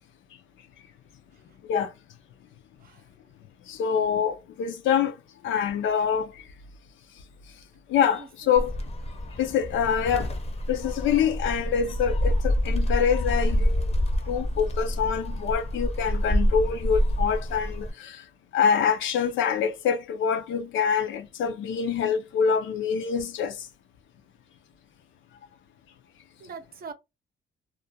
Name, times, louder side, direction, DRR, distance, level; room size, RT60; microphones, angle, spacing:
voice 1, 3.7-5.1 5.4-6.3 7.9-8.7 9.4-10.3 10.7-13.9 14.3-18.2 18.5-23.7, left 7 dB, 80° left, 0.6 m, -25 dB
voice 2, 8.2-8.6 26.4-26.9, right 5 dB, 50° right, 0.6 m, -42 dB
Gull seagull, 8.6-17.9, equal, 30° left, 0.6 m, -27 dB
2.4 x 2.1 x 2.7 m
cardioid pair, 90°, 20 cm